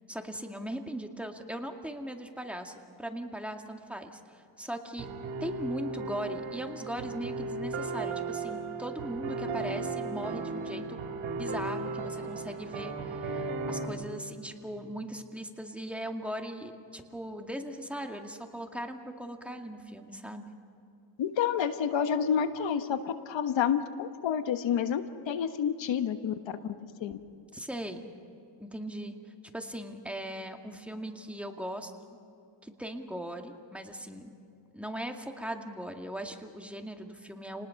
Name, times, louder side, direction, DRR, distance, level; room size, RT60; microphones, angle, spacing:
voice 1, 0.1-5.1 5.4-11.0 11.3-20.5 27.5-28.1 28.6-29.2 29.5-31.9 32.6-34.3 34.7-37.7, right 1 dB, 5° right, 3 dB, 2.1 m, -39 dB
sound 1, 5.0-13.9, right 3 dB, 80° right, 3.3 m, -36 dB
voice 2, 21.2-26.3 27.0-27.2, left 8 dB, 70° left, 9 dB, 1.3 m, -29 dB
29.5 x 20.0 x 5.9 m, 2.6 s
cardioid pair, 95°, 46 cm